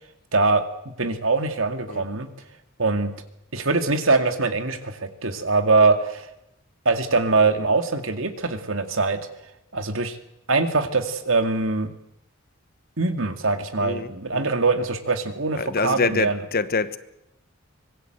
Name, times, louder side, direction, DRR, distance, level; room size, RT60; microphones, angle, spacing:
voice 1, 0.3-2.3 2.8-3.1 3.5-6.3 6.9-9.2 9.7-10.2 10.5-11.9 13.0-16.4, right 3 dB, 70° right, 2.2 m, -23 dB
voice 2, 13.8-14.5 15.5-17.0, left 4 dB, 45° left, 1.2 m, -26 dB
24.5 x 21.0 x 8.0 m
head